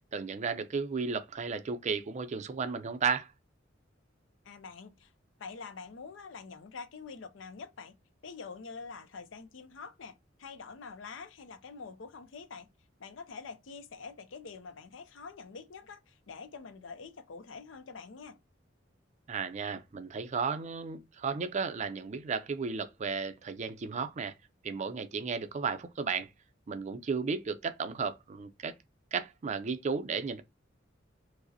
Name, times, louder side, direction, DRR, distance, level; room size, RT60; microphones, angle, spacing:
voice 1, 0.1-3.3 19.3-24.3 24.6-26.3 26.7-28.7 29.1-30.4, right 5 dB, 40° right, 0.4 m, -34 dB
voice 2, 4.4-5.1 5.4-7.9 8.2-12.7 13.0-18.4, left 5 dB, 75° left, 0.5 m, -46 dB
4.8 x 2.0 x 2.7 m
head